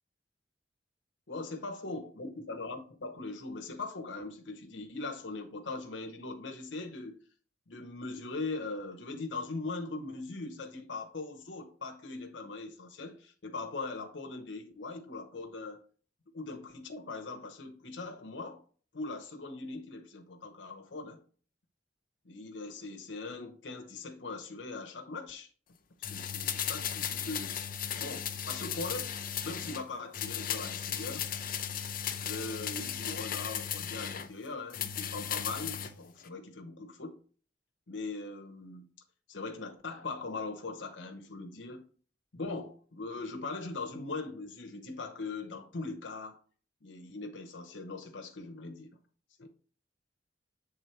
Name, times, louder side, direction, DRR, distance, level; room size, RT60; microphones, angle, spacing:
voice 1, 1.3-7.2 7.7-15.8 16.3-18.6 18.9-21.2 22.2-25.5 26.0-27.6 28.0-31.3 32.2-37.2 37.9-38.9 39.3-41.9 42.3-46.4 46.8-49.0 49.4-49.5, left 3 dB, 80° left, 0.9 m, -40 dB
sound 1, 26.0-29.8 30.1-34.3 34.7-35.9 36.2-36.3, left 9 dB, 50° left, 0.6 m, -36 dB
7.9 x 3.7 x 4.5 m
head